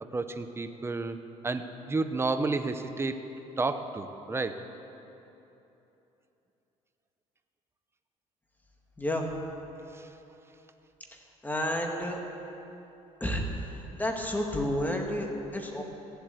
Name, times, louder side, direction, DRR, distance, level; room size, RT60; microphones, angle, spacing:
voice 1, 0.0-3.3 3.6-4.6 9.9-10.1, right 3 dB, 20° right, 8 dB, 0.8 m, -31 dB
voice 2, 11.4-12.2 13.2-13.4 14.0-15.8, left 1 dB, 10° left, 1 dB, 2.0 m, -30 dB
15.5 x 8.1 x 8.0 m, 3.0 s
cardioid pair, 95°, 14 cm